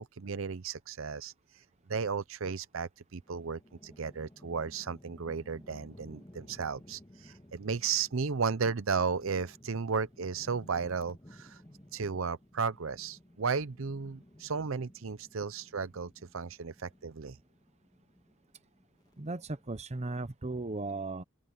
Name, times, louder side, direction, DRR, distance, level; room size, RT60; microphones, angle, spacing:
voice 1, 0.0-1.3 1.9-11.6 11.9-17.4, right 5 dB, 70° right, 0.7 m, -34 dB
sound 1, 3.2-19.8, left 1 dB, 20° left, 1.7 m, -57 dB
voice 2, 19.2-21.2, right 2 dB, 30° right, 0.9 m, -36 dB
head